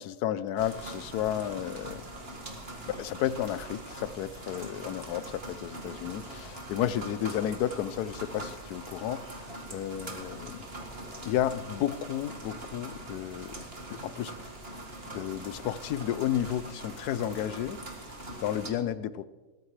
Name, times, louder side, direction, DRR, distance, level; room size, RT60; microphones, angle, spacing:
voice 1, 0.0-2.0 3.0-10.7 11.2-13.5 13.9-14.3 15.1-17.8 18.4-19.3, left 11 dB, 70° left, 16 dB, 1.1 m, -32 dB
sound 1, 0.6-18.7, right 1 dB, 35° right, 2.1 m, -42 dB
22.0 x 18.5 x 3.3 m, 1.3 s
omnidirectional pair, 1.8 m